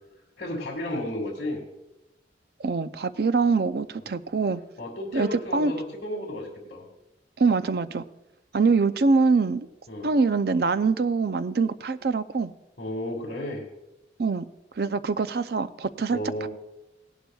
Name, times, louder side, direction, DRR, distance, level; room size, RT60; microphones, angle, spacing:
voice 1, 0.4-1.6 4.8-6.8 9.9-10.1 12.8-13.6 16.1-16.5, left 1 dB, 50° left, -4 dB, 1.8 m, -33 dB
voice 2, 2.6-4.6 5.1-5.7 7.4-8.0 8.5-9.7 10.0-12.5 14.2-14.5 14.8-16.5, right 4 dB, 60° right, 13 dB, 0.5 m, -24 dB
17.5 x 11.5 x 2.3 m, 0.94 s
head